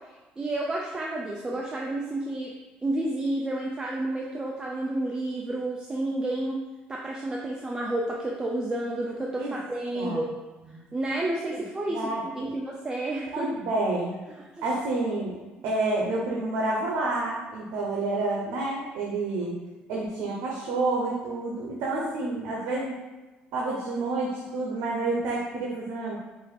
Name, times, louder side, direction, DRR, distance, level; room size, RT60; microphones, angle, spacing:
voice 1, 0.4-2.5 2.8-6.6 6.9-10.3 10.9-13.5 14.6-14.7, right 1 dB, 20° right, -2 dB, 0.5 m, -30 dB
voice 2, 11.9-12.5 13.3-14.2 14.6-15.4 15.6-19.6 19.9-22.9 23.5-26.2, right 2 dB, 90° right, -4 dB, 0.8 m, -29 dB
4.8 x 2.6 x 4.1 m, 1.2 s
cardioid pair, 125°, 4 cm